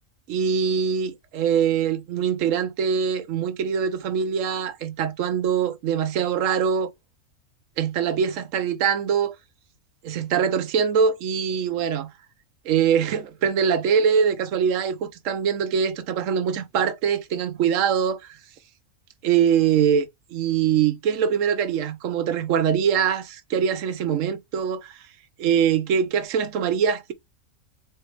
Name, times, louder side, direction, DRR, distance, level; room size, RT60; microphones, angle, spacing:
voice 1, 0.3-6.9 7.8-9.3 10.0-12.1 12.6-18.2 19.2-25.0 25.4-27.1, right 7 dB, 65° right, 1.1 m, -23 dB
4.4 x 2.8 x 3.1 m
omnidirectional pair, 1.5 m